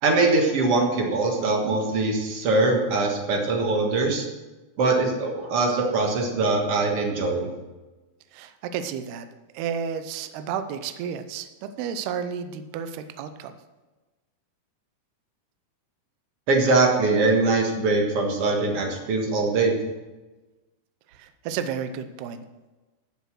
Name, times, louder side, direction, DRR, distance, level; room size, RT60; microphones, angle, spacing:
voice 1, 0.0-4.3 4.8-7.5 16.5-19.8, right 3 dB, 55° right, 1 dB, 1.6 m, -22 dB
voice 2, 8.3-9.3 9.5-13.5 21.1-22.4, right 7 dB, 80° right, 9 dB, 2.6 m, -32 dB
13.5 x 7.1 x 6.2 m, 1.2 s
omnidirectional pair, 4.9 m